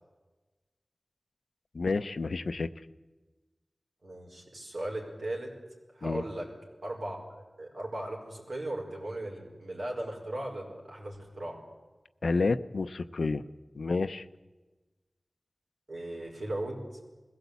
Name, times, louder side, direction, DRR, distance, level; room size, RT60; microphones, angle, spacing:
voice 1, 1.7-2.7 6.0-6.2 12.2-13.4 13.7-14.2, left 3 dB, 85° left, 12 dB, 0.7 m, -29 dB
voice 2, 4.0-5.5 5.9-6.5 6.8-11.6 15.9-16.8, right 1 dB, 85° right, -1 dB, 4.9 m, -37 dB
21.0 x 16.5 x 8.3 m, 1.2 s
wide cardioid pair, 55°, 0 cm